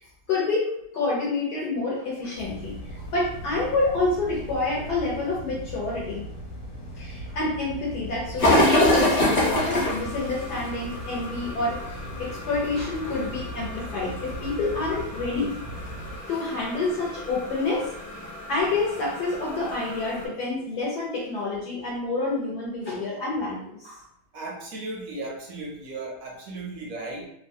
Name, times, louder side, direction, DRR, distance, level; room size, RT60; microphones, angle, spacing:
voice 1, 0.3-6.2 7.0-15.5 16.3-18.0 18.5-24.0, left 3 dB, 70° left, -5 dB, 1.2 m, -28 dB
sound 1, 2.3-16.2, equal, 90° left, 1.4 m, -39 dB
sound 2, 8.4-20.3, left 1 dB, 40° left, 1.1 m, -28 dB
voice 2, 24.3-27.3, right 2 dB, 70° right, -2 dB, 0.9 m, -36 dB
3.1 x 2.2 x 2.6 m, 0.75 s
omnidirectional pair, 1.9 m